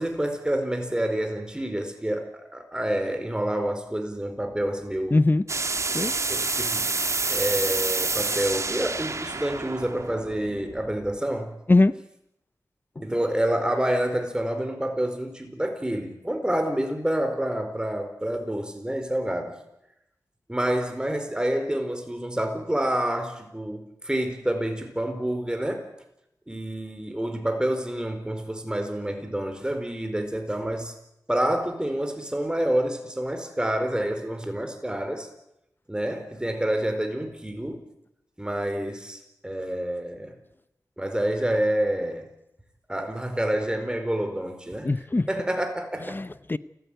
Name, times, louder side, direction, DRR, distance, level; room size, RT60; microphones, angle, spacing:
voice 1, 0.0-5.2 6.3-6.9 7.3-11.5 13.0-19.5 20.5-25.8 26.5-30.9 31.3-35.3 35.9-37.8 38.4-40.3 41.0-42.3 42.9-44.9 45.3-46.2, right 1 dB, 10° right, 6 dB, 4.7 m, -28 dB
voice 2, 5.1-5.5 5.9-6.3 8.3-8.4 11.7-12.0 13.0-13.1 44.8-45.3 46.1-46.6, left 2 dB, 30° left, 15 dB, 0.8 m, -22 dB
sound 1, 5.5-11.2, right 3 dB, 50° right, 1.5 m, -28 dB
29.0 x 15.5 x 9.3 m, 0.83 s
wide cardioid pair, 75°, 7 cm